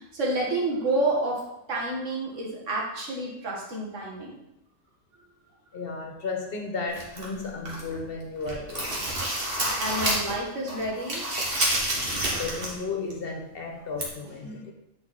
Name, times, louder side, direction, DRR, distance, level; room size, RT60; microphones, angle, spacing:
voice 1, 0.0-1.4 1.7-4.3 9.8-11.2, right 2 dB, 65° right, -3 dB, 2.0 m, -29 dB
voice 2, 5.7-9.1 12.3-14.7, left 4 dB, 45° left, 2 dB, 1.3 m, -34 dB
sound 1, 6.9-8.0 8.3-10.4 10.7-12.8 13.1-13.2 14.0-14.1, right 1 dB, 45° right, 1.9 m, -28 dB
9.7 x 4.3 x 4.2 m, 0.85 s
omnidirectional pair, 1.4 m